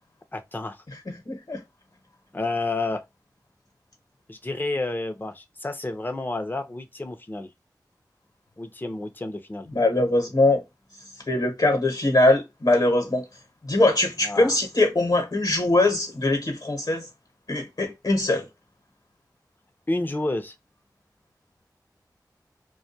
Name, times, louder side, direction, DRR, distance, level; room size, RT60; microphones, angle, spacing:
voice 1, 0.3-0.8 2.3-3.0 4.3-7.5 8.6-9.7 14.2-14.6 19.9-20.5, left 2 dB, 25° left, 0.6 m, -30 dB
voice 2, 1.1-1.6 9.7-10.6 11.3-13.2 13.6-17.1 17.5-18.5, left 2 dB, 65° left, 1.0 m, -22 dB
2.3 x 2.3 x 2.6 m
wide cardioid pair, 60°, 7 cm